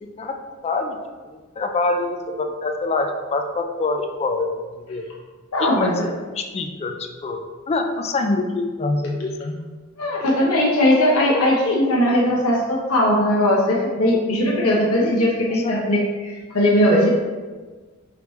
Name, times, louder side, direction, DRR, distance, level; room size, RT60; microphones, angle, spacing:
voice 1, 0.6-1.0 1.2-4.5 4.9-5.0 5.6-5.9 6.3-7.4 7.7-9.6 15.5-15.9, left 3 dB, 30° left, 5 dB, 0.4 m, -25 dB
voice 2, 5.5-6.1 10.0-17.1, left 1 dB, 85° left, -4 dB, 0.9 m, -19 dB
5.0 x 3.1 x 3.1 m, 1.4 s
head